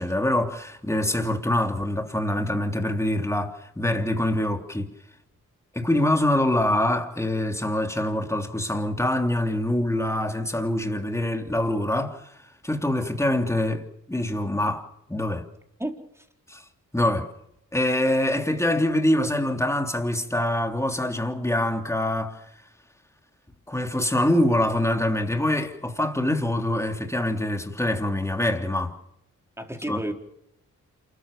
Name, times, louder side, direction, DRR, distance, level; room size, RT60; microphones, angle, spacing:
voice 1, 0.0-4.9 5.7-12.3 12.6-15.5 16.5-16.6 16.9-17.3 17.7-22.4 23.7-29.0 29.9-30.0, left 1 dB, 10° left, 3.3 m, -25 dB
voice 2, 15.8-16.3 29.6-30.1, right 1 dB, 10° right, 4.4 m, -32 dB
27.5 x 14.0 x 7.0 m
cardioid pair, 60°, 32 cm